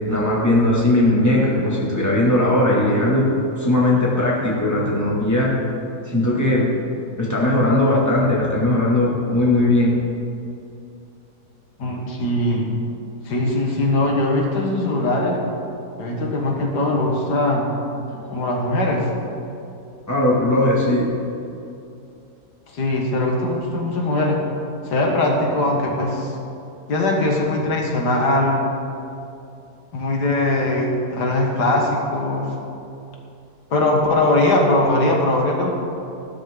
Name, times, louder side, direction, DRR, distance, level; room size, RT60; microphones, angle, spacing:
voice 1, 0.0-3.3 3.6-5.5 6.1-6.7 7.2-9.9 18.1-18.2 20.1-21.1, left 1 dB, 10° left, -5 dB, 2.5 m, -18 dB
voice 2, 11.8-12.7 13.3-15.4 16.0-17.7 18.3-19.1 22.7-24.4 24.9-26.3 26.9-28.6 29.9-32.5 33.7-35.7, left 2 dB, 85° left, 0 dB, 2.1 m, -20 dB
15.0 x 12.5 x 3.9 m, 2.7 s
omnidirectional pair, 1.7 m